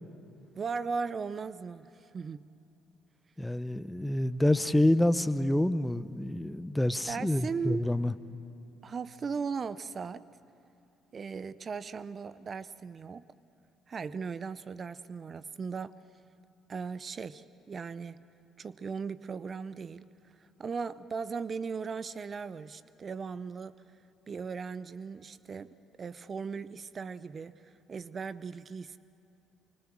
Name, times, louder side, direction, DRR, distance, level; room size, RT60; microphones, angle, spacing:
voice 1, 0.6-2.4 7.1-7.9 8.8-10.3 11.1-13.3 13.9-15.9 16.7-18.2 18.6-23.8 24.3-29.0, right 5 dB, 45° right, 16 dB, 0.6 m, -38 dB
voice 2, 3.4-8.1, left 1 dB, 10° left, 14 dB, 0.9 m, -27 dB
25.0 x 24.0 x 7.5 m, 2.7 s
hypercardioid pair, 55°, 0 cm